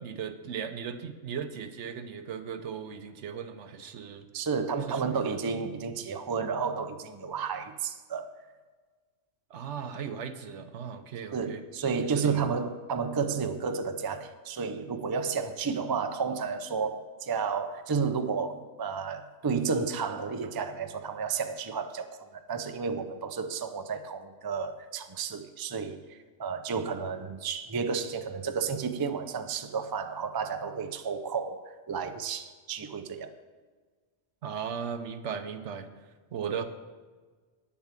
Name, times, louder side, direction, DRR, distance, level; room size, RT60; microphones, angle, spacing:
voice 1, 0.0-4.3 4.9-5.4 9.5-11.6 12.0-12.5 34.4-35.9 36.3-36.6, right 7 dB, 75° right, 9 dB, 1.1 m, -37 dB
voice 2, 4.3-8.3 11.3-33.3, right 5 dB, 30° right, 8 dB, 0.4 m, -32 dB
9.5 x 7.1 x 7.4 m, 1.4 s
omnidirectional pair, 1.2 m